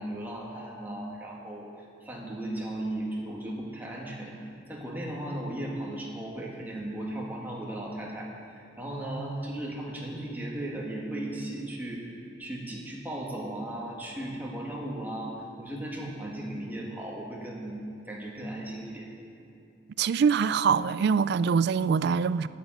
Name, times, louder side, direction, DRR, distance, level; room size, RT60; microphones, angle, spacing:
voice 1, 0.0-1.7 2.0-4.3 4.7-12.1 12.4-17.8 18.0-19.1, right 1 dB, 10° right, 2.0 m, -36 dB
voice 2, 20.0-22.5, right 6 dB, 55° right, 0.3 m, -24 dB
10.5 x 9.2 x 7.9 m
head